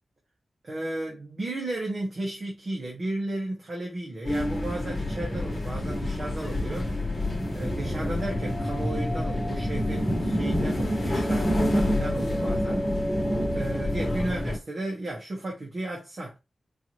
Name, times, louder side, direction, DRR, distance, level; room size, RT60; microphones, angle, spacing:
voice 1, 0.6-6.9 7.5-13.3 13.5-16.4, right 2 dB, 40° right, 1.3 m, -34 dB
sound 1, 4.2-14.6, left 1 dB, 25° left, 1.5 m, -27 dB
4.6 x 2.8 x 3.1 m
wide cardioid pair, 165°, 0 cm